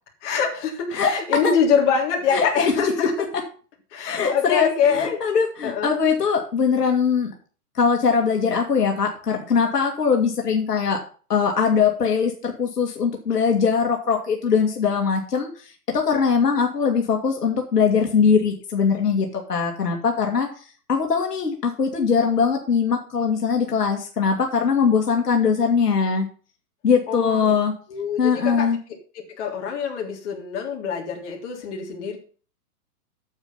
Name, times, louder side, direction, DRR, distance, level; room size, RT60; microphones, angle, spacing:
voice 1, 0.2-3.1 3.9-5.2 5.6-5.9 27.1-27.5 27.9-28.7 29.1-32.2, left 6 dB, 50° left, 0 dB, 3.5 m, -24 dB
voice 2, 0.9-1.5 2.3-2.7 3.0-3.1 4.1-7.3 7.8-11.0 11.3-20.5 20.9-26.3 26.8-27.7 28.2-28.8, left 6 dB, 90° left, 2 dB, 2.3 m, -21 dB
9.0 x 7.5 x 5.7 m, 0.40 s
hypercardioid pair, 140°, 46 cm